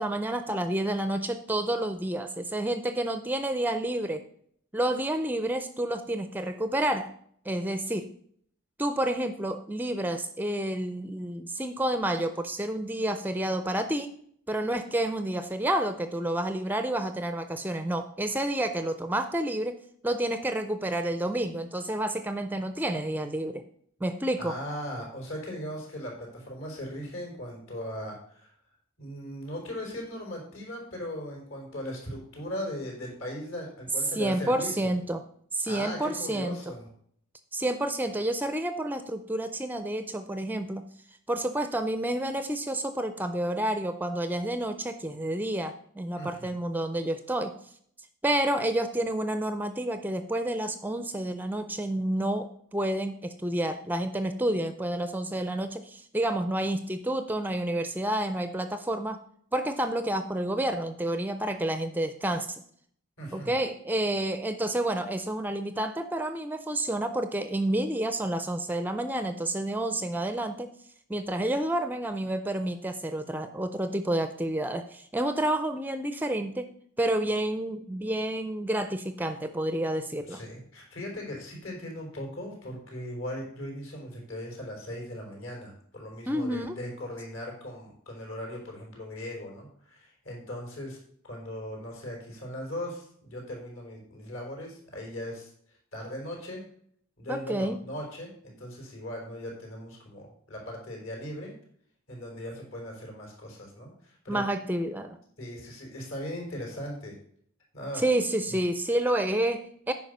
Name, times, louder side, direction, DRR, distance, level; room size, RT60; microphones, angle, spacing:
voice 1, 0.0-4.2 4.7-7.1 7.5-8.1 8.8-14.2 14.5-23.6 24.0-24.5 34.1-35.2 35.5-36.6 37.5-40.9 41.3-47.6 48.2-59.2 59.5-62.6 63.3-70.7 71.1-76.7 77.0-80.4 86.3-86.8 97.3-97.8 104.3-105.2 107.9-109.9, right 1 dB, 10° right, 10 dB, 0.4 m, -29 dB
voice 2, 24.4-28.5 29.0-34.9 35.7-36.9 46.2-46.5 63.2-63.6 80.3-95.5 95.9-96.6 97.2-101.5 102.1-104.4 105.4-107.2 107.7-108.0 108.5-108.6, equal, 70° left, 0 dB, 4.2 m, -38 dB
9.2 x 5.4 x 6.6 m, 0.64 s
head